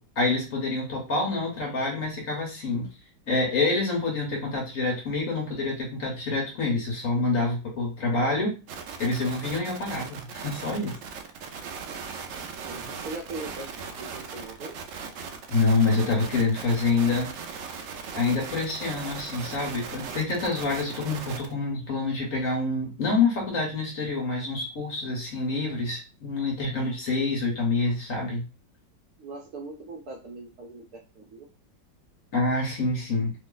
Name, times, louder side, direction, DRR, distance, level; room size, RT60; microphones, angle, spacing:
voice 1, 0.0-2.9 3.3-8.5 9.0-11.0 15.5-17.3 18.1-28.5 32.3-33.3, left 3 dB, 50° left, -1 dB, 1.3 m, -27 dB
sound 1, 8.7-21.5, right 5 dB, 90° right, 0.6 m, -38 dB
voice 2, 12.6-13.7 14.0-14.7 29.2-31.5, right 3 dB, 65° right, 1 dB, 1.1 m, -40 dB
3.3 x 2.1 x 3.8 m, 0.31 s
omnidirectional pair, 2.0 m